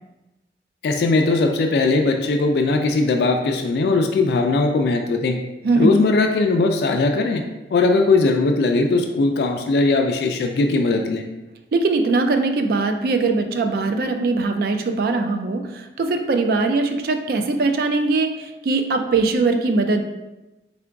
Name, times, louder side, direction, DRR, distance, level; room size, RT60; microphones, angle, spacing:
voice 1, 0.8-5.4 5.8-7.4 7.7-11.2, left 3 dB, 65° left, 4 dB, 0.3 m, -19 dB
voice 2, 5.6-6.0 11.7-20.0, right 3 dB, 55° right, 6 dB, 0.3 m, -21 dB
3.7 x 2.4 x 3.4 m, 1.0 s
head